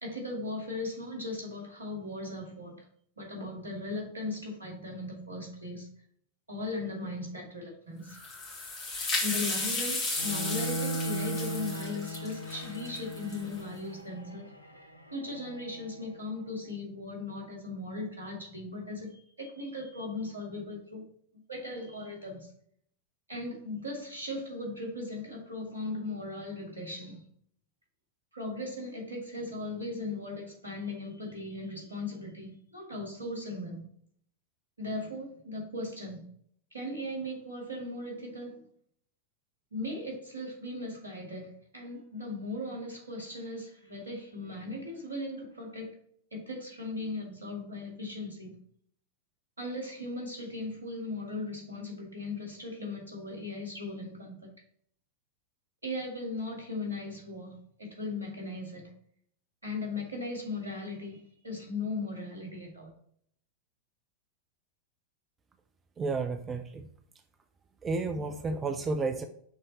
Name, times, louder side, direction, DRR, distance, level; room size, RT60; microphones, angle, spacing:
voice 1, 0.0-2.9 3.2-5.9 6.5-8.2 9.2-14.5 15.1-21.1 21.5-22.5 23.3-27.2 28.3-33.9 34.8-36.2 36.7-38.7 39.7-45.9 46.3-48.6 49.6-54.5 55.8-58.9 59.6-62.9, left 2 dB, 80° right, -1 dB, 2.0 m, -38 dB
sound 1, 8.1-13.6, left 2 dB, 30° left, 2.1 m, -34 dB
Bowed string instrument, 10.1-16.2, right 1 dB, 85° left, 0.6 m, -38 dB
voice 2, 66.0-66.9 67.8-69.3, right 3 dB, 20° right, 7 dB, 0.5 m, -31 dB
6.1 x 3.8 x 4.2 m, 0.63 s
figure-of-eight pair, 90°, 0 cm